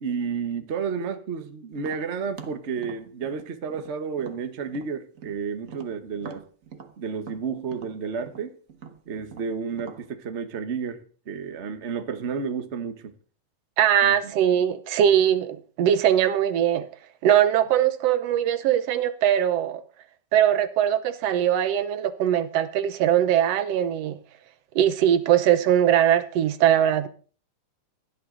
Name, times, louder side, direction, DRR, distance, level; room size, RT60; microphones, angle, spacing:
voice 1, 0.0-6.5 7.0-8.6 9.1-13.1 14.0-14.1, right 6 dB, 90° right, 0.6 m, -31 dB
Tap, 1.7-5.4 5.7-10.1, right 7 dB, 45° right, 1.0 m, -44 dB
voice 2, 13.8-16.9 17.2-19.8 20.3-24.2 24.8-27.1, right 10 dB, 70° right, 1.7 m, -21 dB
17.0 x 11.5 x 3.9 m
omnidirectional pair, 3.3 m